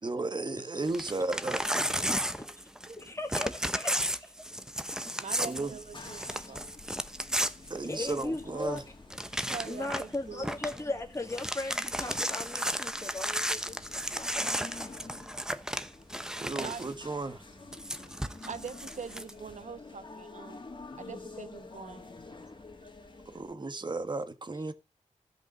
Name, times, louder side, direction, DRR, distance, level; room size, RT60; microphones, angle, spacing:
voice 1, 0.0-1.6 5.4-5.7 7.7-8.8 16.4-17.4 23.3-24.7, right 3 dB, 35° right, 1.4 m, -34 dB
Crumpling crinkling / Tearing, 0.8-3.0 3.3-8.4 8.8-8.9 9.1-10.1 10.4-10.8 11.2-16.9 17.7-19.3, equal, 5° right, 0.9 m, -34 dB
voice 2, 3.0-3.5 3.7-4.3 7.9-8.8 9.4-15.0, left 2 dB, 20° left, 2.0 m, -38 dB
voice 3, 5.2-6.7 9.5-10.6 16.6-16.8 18.0-20.6 20.9-22.0 22.8-22.9, right 6 dB, 65° right, 1.2 m, -43 dB
sound 1, 5.4-23.5, left 3 dB, 35° left, 2.4 m, -49 dB
13.5 x 5.4 x 7.1 m
cardioid pair, 70°, 13 cm